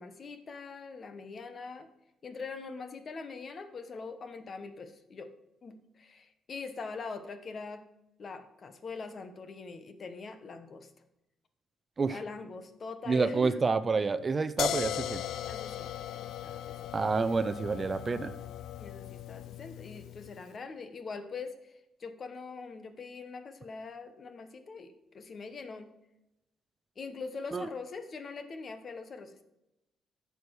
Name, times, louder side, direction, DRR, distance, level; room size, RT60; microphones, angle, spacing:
voice 1, 0.0-1.9 2.2-5.3 5.6-7.8 8.2-10.9 12.0-13.6 15.4-16.8 18.8-21.7 22.0-25.9 27.0-29.4, left 4 dB, 45° left, 9 dB, 1.1 m, -43 dB
voice 2, 13.1-15.2 16.9-18.3 27.5-27.7, right 4 dB, 35° right, 12 dB, 0.5 m, -28 dB
sound 1, 14.6-20.4, left 11 dB, 80° left, 0.4 m, -38 dB
10.5 x 6.9 x 4.8 m, 0.91 s
cardioid pair, 90°, 0 cm